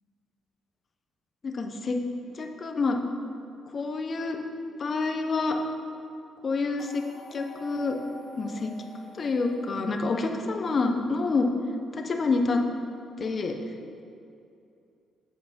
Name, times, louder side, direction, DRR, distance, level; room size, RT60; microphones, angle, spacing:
voice 1, 1.4-2.0 2.3-3.0 3.7-4.4 4.8-5.6 6.4-7.0 7.3-8.0 8.3-8.7 9.2-11.5 11.9-12.6 13.2-13.5, left 3 dB, 40° left, 4 dB, 0.9 m, -27 dB
sound 1, 6.8-11.0, left 1 dB, 15° left, 2.1 m, -47 dB
8.1 x 7.7 x 5.2 m, 2.6 s
cardioid pair, 90°, 0 cm